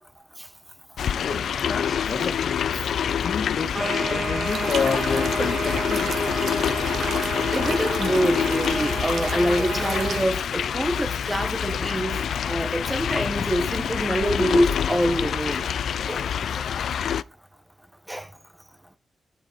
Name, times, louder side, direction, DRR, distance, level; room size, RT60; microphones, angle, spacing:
sound 1, 1.0-17.2, left 8 dB, 75° left, 0.6 m, -26 dB
voice 1, 1.1-2.6 3.2-6.7, left 5 dB, 60° left, 2.6 m, -30 dB
sound 2, 3.7-10.2, right 4 dB, 30° right, 1.5 m, -32 dB
sound 3, 4.4-10.2, right 7 dB, 80° right, 2.2 m, -34 dB
voice 2, 7.5-15.7 16.1-16.3 18.1-18.3, equal, 5° right, 1.8 m, -25 dB
12.0 x 7.6 x 4.9 m
wide cardioid pair, 135°, 0 cm